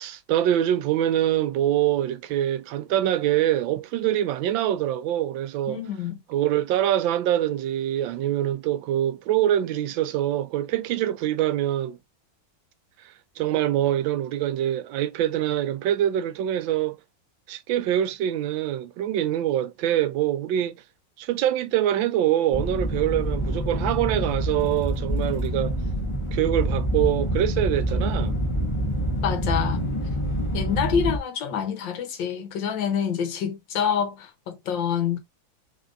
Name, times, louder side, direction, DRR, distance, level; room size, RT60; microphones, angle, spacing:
voice 1, 0.0-5.8 6.3-12.0 13.0-17.0 17.5-20.8 21.2-25.8 26.3-28.3, right 12 dB, 85° right, 1.3 m, -24 dB
voice 2, 5.7-6.2 29.2-29.9 30.5-35.2, left 7 dB, 75° left, 1.6 m, -27 dB
sound 1, 22.5-31.2, equal, 20° left, 0.9 m, -26 dB
3.6 x 3.6 x 2.5 m
omnidirectional pair, 2.0 m